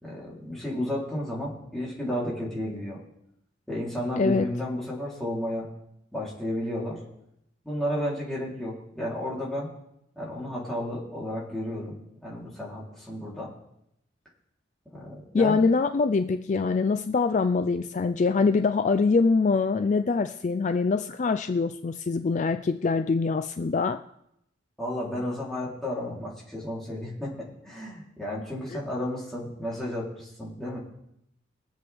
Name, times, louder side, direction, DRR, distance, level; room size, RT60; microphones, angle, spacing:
voice 1, 0.0-3.0 3.7-5.7 6.1-7.0 7.6-9.7 10.2-11.9 12.2-13.5 14.9-15.7 24.8-30.8, left 1 dB, ahead, -6 dB, 3.4 m, -32 dB
voice 2, 4.2-4.5 15.3-24.0 28.7-28.8, left 4 dB, 40° left, 9 dB, 0.4 m, -24 dB
22.5 x 7.7 x 3.5 m, 0.79 s
head